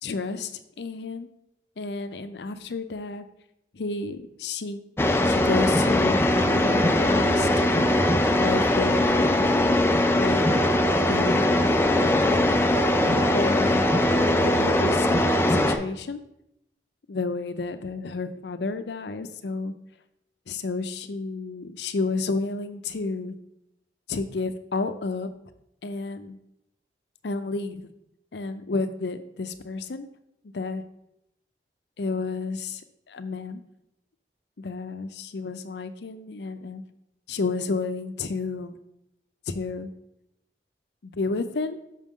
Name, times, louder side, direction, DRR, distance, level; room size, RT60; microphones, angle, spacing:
voice 1, 0.0-1.3 1.8-3.2 3.7-4.8 5.2-7.5 8.4-9.3 10.2-10.4 11.1-11.4 13.0-14.0 14.4-16.2 17.1-19.7 20.5-23.3 24.1-25.3 25.8-26.4 27.2-27.9 28.3-30.1 30.5-30.8 32.0-32.8 33.1-33.6 34.6-36.8 37.3-38.8 39.5-39.9 41.0-41.8, left 3 dB, 75° left, 10 dB, 0.5 m, -31 dB
sound 1, 5.0-15.8, left 1 dB, 15° left, 0.4 m, -21 dB
6.3 x 5.8 x 3.7 m, 0.80 s
head